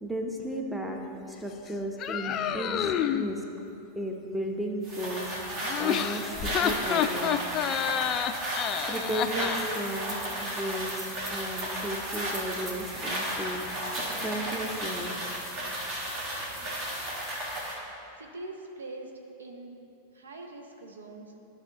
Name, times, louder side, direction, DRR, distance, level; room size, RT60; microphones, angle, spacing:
voice 1, 0.0-3.4 4.0-5.3 5.8-7.4 8.9-13.6 14.2-15.3, right 1 dB, 5° right, 2 dB, 0.8 m, -34 dB
sound 1, 2.0-3.3 5.6-9.6, left 9 dB, 30° left, 0.3 m, -29 dB
sound 2, 4.8-17.8, right 1 dB, 35° right, 1.6 m, -34 dB
voice 2, 18.1-19.1 19.4-19.8 20.1-21.3, right 2 dB, 70° right, 3 dB, 0.8 m, -43 dB
13.0 x 5.5 x 2.8 m, 2.7 s
figure-of-eight pair, 90°, 0 cm